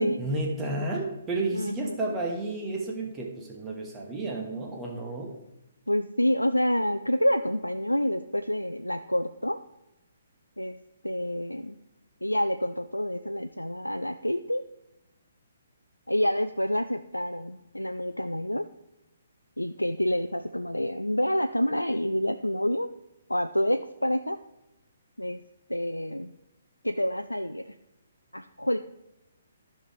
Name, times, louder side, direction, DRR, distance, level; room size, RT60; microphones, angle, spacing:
voice 1, 0.0-5.4, right 2 dB, 15° right, 0 dB, 1.2 m, -31 dB
voice 2, 1.5-2.0 5.9-9.6 10.6-10.8 11.0-11.8 12.2-14.6 16.1-18.7 19.6-22.9 23.3-24.4 25.2-25.4 25.7-26.3 26.8-27.6 28.3-28.8, equal, 90° left, 8 dB, 0.4 m, -28 dB
14.5 x 5.6 x 3.4 m, 0.91 s
figure-of-eight pair, 130°, 0 cm